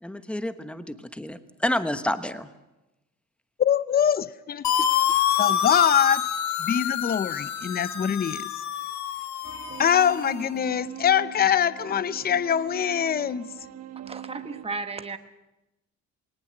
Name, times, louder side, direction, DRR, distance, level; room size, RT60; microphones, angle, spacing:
voice 1, 0.0-2.5, left 1 dB, 5° left, 10 dB, 1.2 m, -29 dB
voice 2, 3.6-4.6 5.4-6.3 6.6-8.5 9.8-13.5, left 9 dB, 30° left, 16 dB, 0.7 m, -23 dB
sound 1, 4.6-10.4, left 9 dB, 70° left, 1.5 m, -27 dB
sound 2, 9.4-14.7, right 12 dB, 55° right, 1.5 m, -41 dB
voice 3, 14.1-15.2, right 3 dB, 20° right, 9 dB, 1.2 m, -34 dB
19.5 x 19.0 x 7.8 m, 0.97 s
cardioid pair, 110°, 29 cm